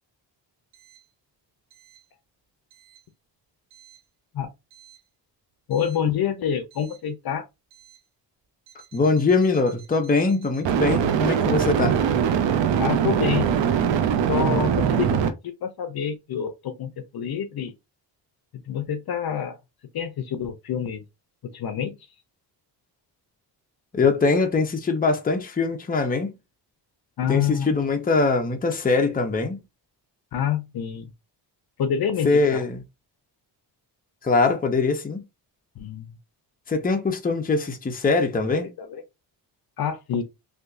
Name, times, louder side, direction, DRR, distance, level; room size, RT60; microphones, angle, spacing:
voice 1, 5.7-7.4 12.7-13.5 14.3-17.7 18.7-19.6 19.9-21.0 21.5-21.9 27.2-27.7 30.3-31.1 31.8-32.6 35.8-36.1 38.5-39.0 39.8-40.2, left 8 dB, 60° left, 0.7 m, -27 dB
sound 1, 5.8-5.9 10.7-15.3, right 8 dB, 90° right, 0.7 m, -22 dB
voice 2, 8.9-12.0 23.9-26.3 27.3-29.6 32.2-32.8 34.2-35.2 36.7-38.7, left 3 dB, 20° left, 0.7 m, -22 dB
3.4 x 2.7 x 2.5 m
cardioid pair, 105°, 43 cm